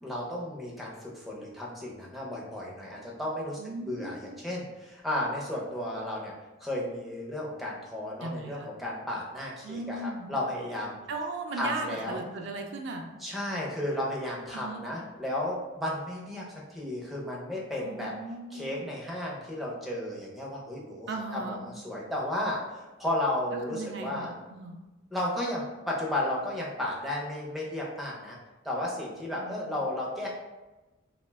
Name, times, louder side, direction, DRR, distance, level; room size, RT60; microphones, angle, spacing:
voice 1, 0.0-3.6 3.9-6.3 6.6-11.0 11.6-12.2 13.2-16.4 16.7-18.1 18.5-24.3 25.1-28.4 28.6-30.3, left 1 dB, ahead, -4 dB, 0.4 m, -33 dB
voice 2, 3.6-4.4 8.2-8.7 9.6-10.3 11.1-13.0 14.5-14.8 17.8-18.7 21.1-21.6 23.5-24.8 29.3-29.7, right 2 dB, 60° right, 2 dB, 0.3 m, -37 dB
2.4 x 2.1 x 3.2 m, 1.1 s
head